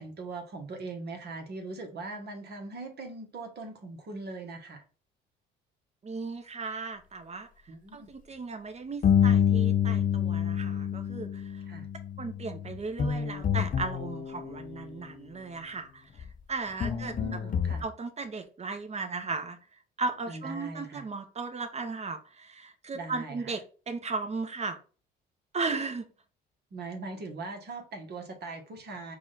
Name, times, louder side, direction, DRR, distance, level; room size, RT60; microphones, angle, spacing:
voice 1, 0.0-4.8 7.7-8.1 11.7-11.9 16.8-17.8 20.3-21.0 22.9-23.5 26.7-29.2, right 3 dB, 50° right, 1.3 m, -40 dB
voice 2, 6.0-7.5 7.9-11.6 12.2-17.4 17.8-19.6 20.0-24.8 25.5-26.0, right 4 dB, 30° right, 1.0 m, -36 dB
sound 1, 9.0-14.9 16.2-16.3 16.8-17.8, left 8 dB, 40° left, 0.6 m, -28 dB
4.7 x 2.5 x 4.0 m
supercardioid pair, 70°, 21 cm